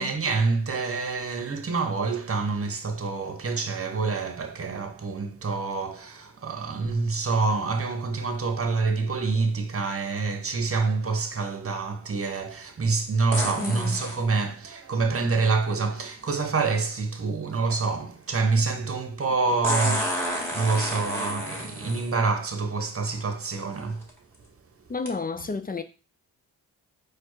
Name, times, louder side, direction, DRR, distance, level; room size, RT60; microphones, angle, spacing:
voice 1, 0.0-24.1, right 4 dB, 35° right, 1.0 m, -27 dB
sound 1, 6.9-7.0 13.3-14.2 16.2-16.3 19.6-22.1 23.1-23.2 23.8-24.1 25.1-25.2, equal, 5° left, 1.9 m, -30 dB
voice 2, 13.6-14.0 24.9-25.8, left 4 dB, 25° left, 0.4 m, -31 dB
4.4 x 2.4 x 4.6 m
supercardioid pair, 55°, 40 cm